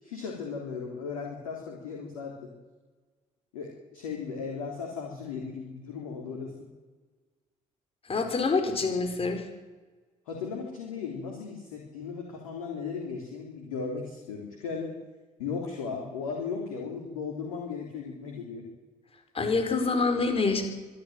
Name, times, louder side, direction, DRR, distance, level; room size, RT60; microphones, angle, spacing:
voice 1, 0.0-2.5 3.5-6.7 10.3-14.9 15.4-18.6, left 5 dB, 70° left, 0 dB, 3.6 m, -36 dB
voice 2, 8.1-9.4 19.3-20.6, left 4 dB, 35° left, 6 dB, 4.9 m, -26 dB
25.0 x 12.5 x 9.3 m, 1.3 s
figure-of-eight pair, 50°, 18 cm